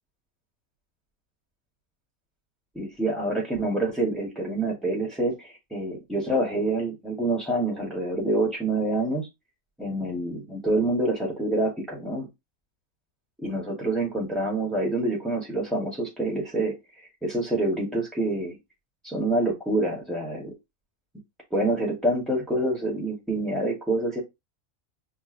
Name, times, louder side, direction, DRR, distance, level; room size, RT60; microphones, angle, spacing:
voice 1, 2.7-9.3 9.8-12.3 13.4-16.7 17.2-18.6 19.0-20.5 21.5-24.2, right 2 dB, ahead, -3 dB, 0.6 m, -27 dB
6.0 x 2.1 x 2.4 m, 0.21 s
omnidirectional pair, 1.5 m